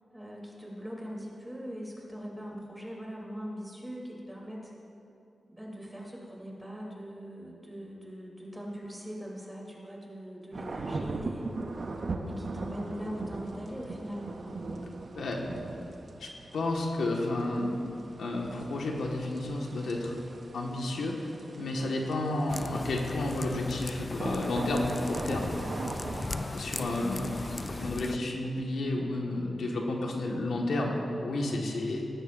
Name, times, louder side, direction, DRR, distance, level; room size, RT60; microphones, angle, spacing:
voice 1, 0.1-4.7 5.5-11.4 12.3-14.4, equal, 10° right, -3 dB, 3.2 m, -41 dB
sound 1, 10.5-27.9, right 3 dB, 55° right, 0.9 m, -40 dB
voice 2, 16.2-17.8 18.2-20.2 20.5-21.2 21.6-25.5 26.5-32.0, left 2 dB, 90° left, -1 dB, 1.6 m, -31 dB
sound 2, 22.5-28.2, left 3 dB, 35° left, 0.4 m, -38 dB
17.5 x 13.5 x 2.6 m, 2.7 s
wide cardioid pair, 85°, 0 cm